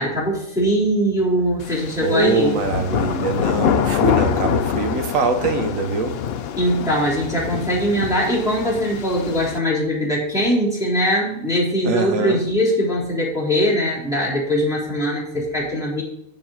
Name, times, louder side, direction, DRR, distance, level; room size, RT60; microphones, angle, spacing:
voice 1, 0.0-2.6 6.6-16.0, equal, ahead, -8 dB, 3.8 m, -21 dB
sound 1, 1.6-9.6, left 8 dB, 70° left, 0.6 m, -25 dB
voice 2, 2.0-6.1 11.8-12.4, right 3 dB, 65° right, 6 dB, 1.4 m, -22 dB
7.2 x 5.3 x 7.4 m, 0.78 s
omnidirectional pair, 1.6 m